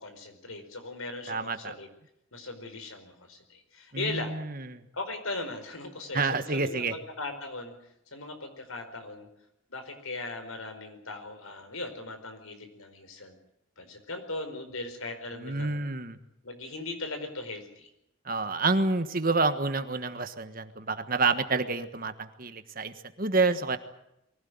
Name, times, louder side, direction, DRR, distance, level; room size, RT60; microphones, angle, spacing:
voice 1, 0.0-1.9 2.3-4.3 4.9-7.7 8.1-9.3 9.7-13.4 13.8-15.8 16.4-17.9, left 2 dB, 80° left, 7 dB, 4.8 m, -38 dB
voice 2, 1.3-1.7 3.9-4.8 6.1-6.9 15.3-16.2 18.2-23.8, right 3 dB, 40° right, 10 dB, 1.4 m, -28 dB
23.5 x 16.5 x 9.6 m, 0.83 s
head